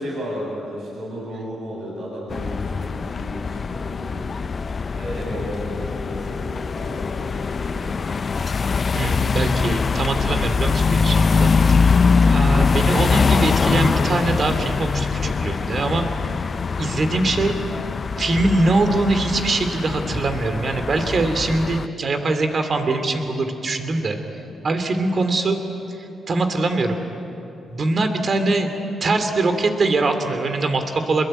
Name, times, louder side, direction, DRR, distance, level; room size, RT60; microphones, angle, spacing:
voice 1, 0.0-4.3 4.9-8.1, equal, 65° right, -3 dB, 7.4 m, -33 dB
sound 1, 2.3-21.9, left 5 dB, 40° left, 0.5 m, -22 dB
voice 2, 8.9-11.8 12.1-16.1 16.8-17.6 18.2-24.2 24.6-25.6 25.9-27.0 27.7-28.7 29.0-31.2, right 2 dB, 45° right, 7 dB, 3.0 m, -22 dB
26.5 x 21.5 x 8.9 m, 2.9 s
cardioid pair, 95°, 0 cm